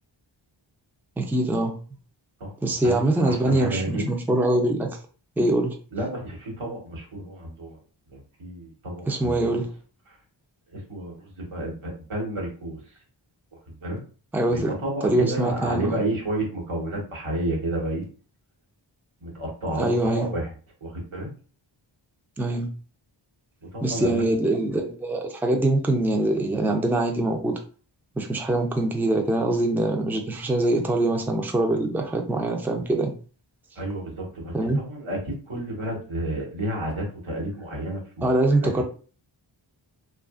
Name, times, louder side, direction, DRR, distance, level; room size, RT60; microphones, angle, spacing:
voice 1, 1.2-1.7 2.6-4.9 5.4-5.8 9.1-9.7 14.3-14.7 15.0-16.0 19.8-20.3 22.4-22.7 23.8-27.5 28.2-33.1 34.5-34.8 38.2-38.8, right 1 dB, 5° right, 2 dB, 0.5 m, -23 dB
voice 2, 2.8-4.1 5.9-7.8 8.1-9.6 10.1-10.2 10.7-12.8 13.7-14.0 14.5-18.0 19.2-20.5 20.8-21.3 23.7-24.2 33.7-38.8, right 1 dB, 90° right, -1 dB, 1.2 m, -31 dB
2.6 x 2.4 x 2.4 m, 0.38 s
wide cardioid pair, 50°, 48 cm